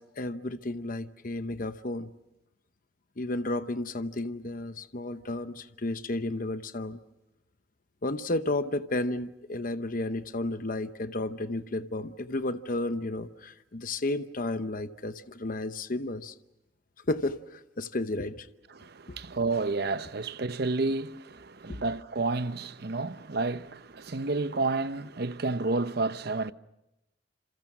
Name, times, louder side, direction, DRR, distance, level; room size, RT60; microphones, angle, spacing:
voice 1, 0.0-2.1 3.2-7.0 8.0-16.3 17.1-18.5 19.1-19.2, left 2 dB, 50° left, 0.9 m, -32 dB
voice 2, 18.7-26.5, right 3 dB, 60° right, 0.8 m, -30 dB
28.0 x 28.0 x 6.1 m
head